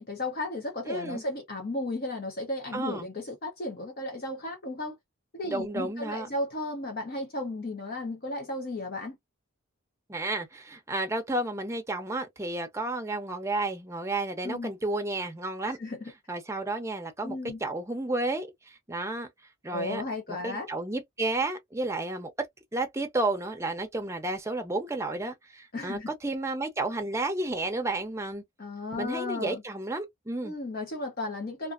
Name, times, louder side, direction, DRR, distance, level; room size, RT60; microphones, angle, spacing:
voice 1, 0.0-5.0 5.3-9.2 14.4-14.7 15.6-16.1 17.2-17.6 19.7-20.7 25.7-26.1 28.6-29.6 30.4-31.7, left 2 dB, 45° left, 0.8 m, -34 dB
voice 2, 0.9-1.2 2.7-3.1 5.5-6.3 10.1-15.8 16.3-17.4 17.6-19.3 19.6-20.0 20.4-22.3 22.7-28.4 29.0-30.5, right 2 dB, 15° right, 0.6 m, -32 dB
2.5 x 2.5 x 2.4 m
head